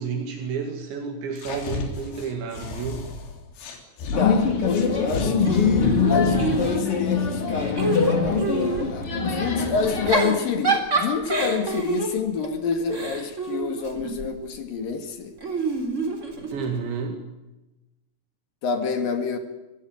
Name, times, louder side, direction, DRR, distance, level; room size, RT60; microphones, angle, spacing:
voice 1, 0.0-3.1 16.5-17.2, right 5 dB, 75° right, 4 dB, 4.5 m, -30 dB
sound 1, 1.4-4.2 4.7-6.8, left 3 dB, 90° left, 5.8 m, -31 dB
sound 2, 4.1-10.1, left 5 dB, 35° left, 3.4 m, -23 dB
voice 2, 4.2-15.3 18.6-19.4, left 5 dB, 55° left, 7 dB, 3.5 m, -28 dB
Giggle / Chuckle chortle, 5.4-7.1 7.5-8.9 9.8-14.3 15.4-16.8, right 3 dB, 15° right, 3.1 m, -27 dB
25.0 x 16.5 x 9.4 m, 1.0 s
omnidirectional pair, 5.4 m